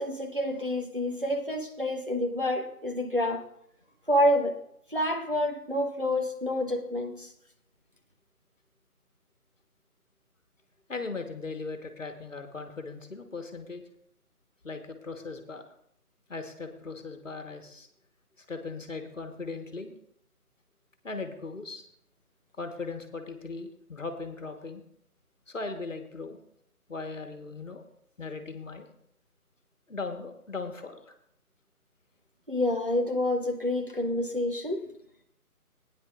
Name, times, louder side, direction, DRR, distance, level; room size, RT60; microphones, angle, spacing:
voice 1, 0.0-3.4 4.1-4.6 4.9-7.3 32.5-34.8, left 1 dB, 35° right, 2 dB, 0.8 m, -28 dB
voice 2, 10.9-13.8 14.6-15.6 16.3-17.9 18.4-19.9 21.0-21.8 22.6-24.8 25.5-26.4 26.9-27.8 28.2-28.9 29.9-31.1, left 3 dB, 55° left, 6 dB, 1.4 m, -38 dB
17.0 x 9.7 x 2.4 m, 0.73 s
figure-of-eight pair, 180°, 45 cm